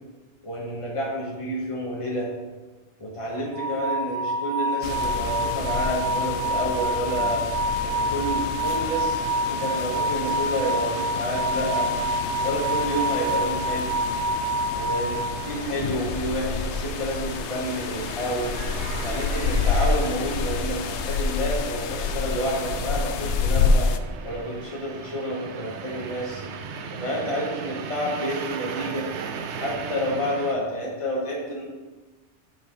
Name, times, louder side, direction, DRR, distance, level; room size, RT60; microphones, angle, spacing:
voice 1, 0.4-2.3 3.0-7.4 7.8-11.9 12.4-14.0 14.7-18.6 19.0-23.9 24.2-26.4 26.9-29.1 29.6-31.6, equal, 30° left, -3 dB, 1.4 m, -29 dB
sound 1, 3.5-15.8, right 1 dB, 65° right, 1.1 m, -27 dB
sound 2, 4.8-24.0, left 5 dB, 80° left, 0.9 m, -29 dB
sound 3, 10.8-30.6, right 6 dB, 80° right, 0.9 m, -39 dB
6.2 x 6.2 x 4.6 m, 1.2 s
omnidirectional pair, 1.2 m